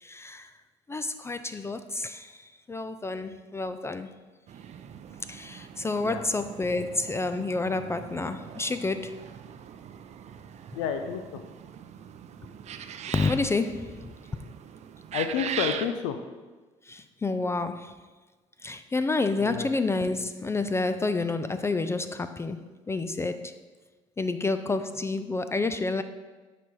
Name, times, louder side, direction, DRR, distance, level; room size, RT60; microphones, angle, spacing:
voice 1, 0.0-0.5 0.9-2.3 2.7-4.1 5.3-9.2 13.1-14.0 16.9-17.9 18.6-22.6 22.9-23.5 24.2-26.0, left 3 dB, 15° left, 0.4 m, -29 dB
sound 1, 4.5-15.9, right 8 dB, 45° right, 0.5 m, -41 dB
voice 2, 10.7-11.4 15.1-16.2 19.4-19.7, left 7 dB, 80° left, 0.5 m, -30 dB
6.7 x 4.2 x 4.7 m
hypercardioid pair, 70°, 15 cm